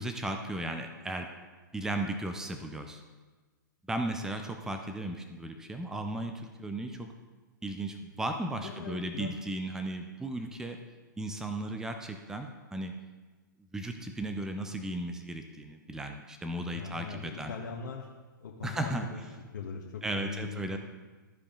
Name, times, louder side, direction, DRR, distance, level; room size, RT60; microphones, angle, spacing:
voice 1, 0.0-1.3 1.7-3.0 3.9-7.1 7.6-10.8 11.2-13.0 13.7-17.5 18.6-19.1 20.0-20.8, right 1 dB, 5° right, 5 dB, 0.6 m, -35 dB
voice 2, 8.6-9.3 16.7-18.1 18.4-19.2 19.5-20.8, left 6 dB, 65° left, -2 dB, 1.1 m, -40 dB
14.0 x 4.9 x 3.8 m, 1.3 s
hypercardioid pair, 120°, 11 cm